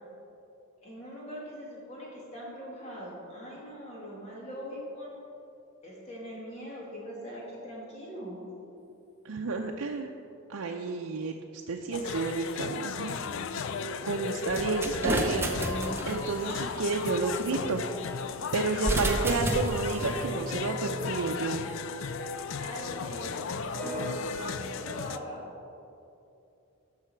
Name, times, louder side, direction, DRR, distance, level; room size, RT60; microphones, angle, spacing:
voice 1, 0.8-5.2 5.8-8.4 22.6-25.5, equal, 30° left, -5 dB, 2.3 m, -41 dB
voice 2, 9.2-10.1 10.5-13.2 14.0-15.5 16.0-17.8 18.5-21.6, right 3 dB, 85° right, 1 dB, 0.5 m, -31 dB
sound 1, 11.9-25.2, left 6 dB, 60° left, 0.3 m, -36 dB
sound 2, 13.5-14.7 15.0-23.2 23.6-24.5, equal, 5° left, 1.5 m, -41 dB
sound 3, 14.5-16.5 18.7-20.3, right 1 dB, 10° right, 0.6 m, -31 dB
12.5 x 5.7 x 4.5 m, 2.7 s
head